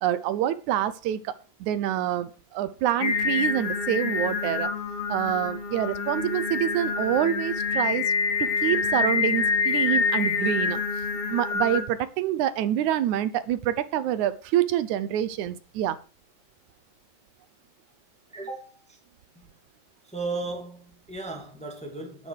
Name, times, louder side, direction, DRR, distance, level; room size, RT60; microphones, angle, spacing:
voice 1, 0.0-1.3 1.6-4.7 5.1-8.1 8.4-10.8 11.3-16.0, right 11 dB, 85° right, 2.2 m, -26 dB
Singing, 3.0-11.8, left 5 dB, 50° left, 3.0 m, -26 dB
voice 2, 18.3-19.0 19.3-19.5 20.0-22.3, right 3 dB, 5° left, 1.8 m, -36 dB
10.5 x 9.8 x 4.7 m
omnidirectional pair, 3.3 m